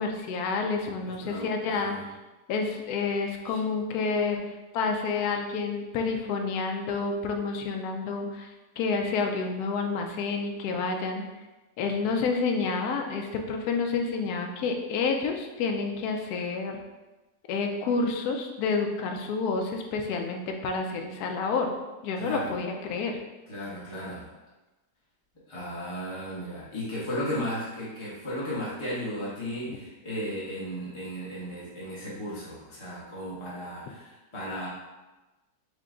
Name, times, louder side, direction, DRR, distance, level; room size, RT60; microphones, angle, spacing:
voice 1, 0.0-1.9 2.5-11.2 11.8-16.8 17.5-21.7 22.0-23.2, left 4 dB, 70° left, 3 dB, 1.0 m, -29 dB
voice 2, 1.0-2.0 3.4-3.6 22.1-22.5 23.5-24.3 25.5-34.7, equal, 25° left, -9 dB, 0.7 m, -35 dB
4.7 x 2.2 x 3.7 m, 1.1 s
omnidirectional pair, 1.9 m